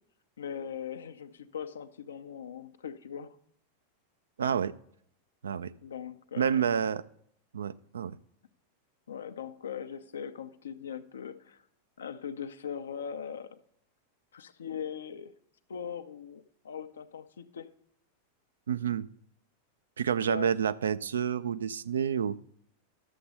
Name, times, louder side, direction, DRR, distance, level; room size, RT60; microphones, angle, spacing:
voice 1, 0.4-3.4 5.8-6.6 9.1-11.6 12.0-13.6 14.3-15.3 15.7-17.7 20.2-20.5, left 7 dB, 65° left, 11 dB, 0.6 m, -40 dB
voice 2, 4.4-4.7 5.4-5.7 6.4-7.0 7.5-8.2 18.7-19.1 20.0-22.4, right 7 dB, 65° right, 15 dB, 0.4 m, -29 dB
12.0 x 7.6 x 4.1 m, 0.70 s
figure-of-eight pair, 90°, 0 cm